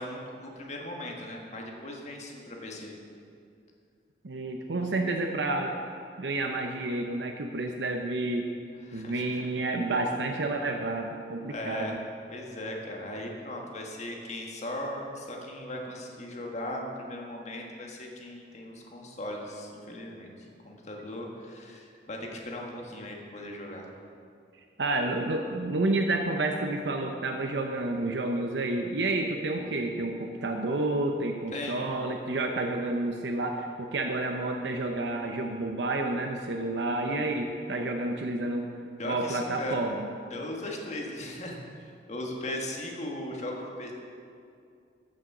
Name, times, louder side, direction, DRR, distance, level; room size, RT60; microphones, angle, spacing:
voice 1, 0.0-2.9 8.9-9.5 11.5-12.0 12.3-20.3 20.6-23.9 31.5-31.9 39.0-39.8 40.3-43.9, left 1 dB, 40° left, 0 dB, 1.5 m, -38 dB
voice 2, 4.2-5.8 6.2-8.5 8.9-12.0 24.8-38.7 39.0-40.1, right 2 dB, 85° right, 3 dB, 0.8 m, -30 dB
14.0 x 6.4 x 6.0 m, 2.4 s
head